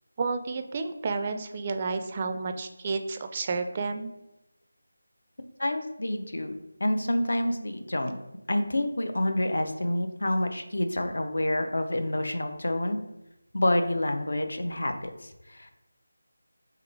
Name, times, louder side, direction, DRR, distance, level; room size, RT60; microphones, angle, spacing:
voice 1, 0.2-4.1, right 4 dB, 30° right, 7 dB, 0.3 m, -31 dB
voice 2, 5.6-6.5 6.8-8.2 8.5-13.0 13.5-15.7, left 1 dB, 70° left, 7 dB, 0.6 m, -28 dB
3.7 x 3.2 x 3.3 m, 0.89 s
figure-of-eight pair, 165°, 0 cm